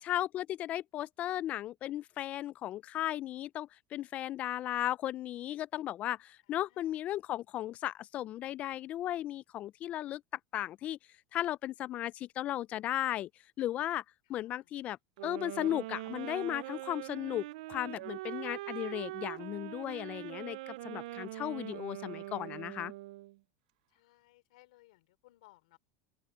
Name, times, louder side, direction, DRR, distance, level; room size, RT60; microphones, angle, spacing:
voice 1, 0.0-10.2 10.5-11.0 11.3-13.3 13.6-14.0 14.3-15.0 15.2-22.9, left 13 dB, 35° left, 0.3 m, -36 dB
voice 2, 6.5-7.0 14.2-14.7 23.9-25.8, left 19 dB, 85° left, 3.1 m, -64 dB
sound 1, 15.2-23.4, right 18 dB, 85° right, 0.3 m, -42 dB
open air
supercardioid pair, 145°, 4 cm